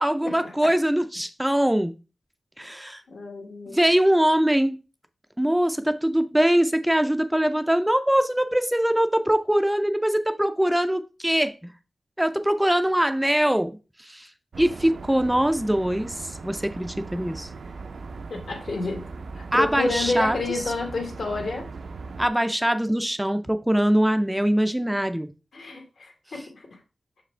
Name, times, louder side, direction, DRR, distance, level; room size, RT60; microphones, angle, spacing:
voice 1, 0.0-1.9 2.6-3.0 3.7-4.8 5.4-11.7 12.2-14.3 14.6-17.5 19.5-20.4 22.2-25.3 26.3-26.4, equal, 5° right, 0.4 m, -22 dB
voice 2, 3.1-3.8 18.3-19.0 19.4-21.7 25.5-26.7, left 3 dB, 75° left, 1.6 m, -29 dB
sound 1, 14.5-22.3, right 4 dB, 70° right, 0.5 m, -39 dB
6.3 x 4.9 x 3.2 m
wide cardioid pair, 125°, 0 cm